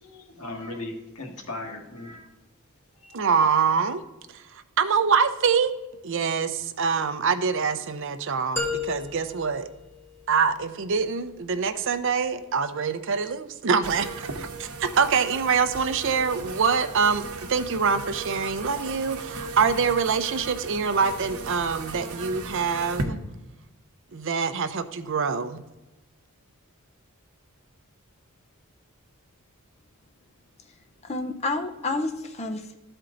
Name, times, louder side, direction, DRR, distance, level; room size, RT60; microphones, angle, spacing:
voice 1, 0.0-2.2 3.0-3.2, left 2 dB, 90° left, 1 dB, 1.7 m, -37 dB
voice 2, 3.1-4.0 4.3-5.7 6.0-9.7 10.3-17.2 17.5-23.2 24.1-25.6, right 5 dB, 55° right, 10 dB, 0.6 m, -25 dB
sound 1, 8.6-10.6, left 3 dB, 10° left, 1.3 m, -33 dB
sound 2, 13.8-23.0, right 3 dB, 80° right, 0.9 m, -36 dB
voice 3, 31.0-32.7, left 2 dB, 30° left, 5 dB, 0.6 m, -29 dB
12.5 x 4.4 x 3.8 m, 1.0 s
head